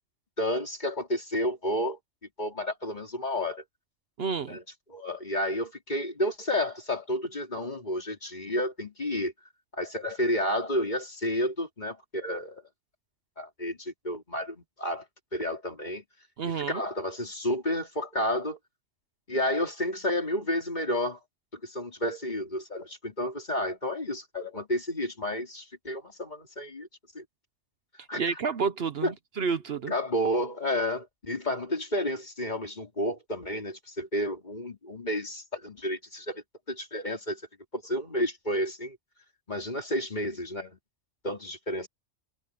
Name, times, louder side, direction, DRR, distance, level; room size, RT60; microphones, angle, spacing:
voice 1, 0.4-2.0 2.4-3.6 4.5-4.6 4.9-9.3 9.7-12.6 13.4-15.0 15.3-16.0 16.5-18.6 19.3-21.2 21.5-26.9 27.1-27.2 28.1-28.3 29.0-29.1 29.9-37.4 37.7-39.0 39.5-40.8 41.2-41.9, left 1 dB, 35° left, 3.3 m, -31 dB
voice 2, 4.2-4.6 16.4-16.8 28.1-29.9, right 5 dB, 55° right, 1.0 m, -30 dB
omnidirectional pair, 1.3 m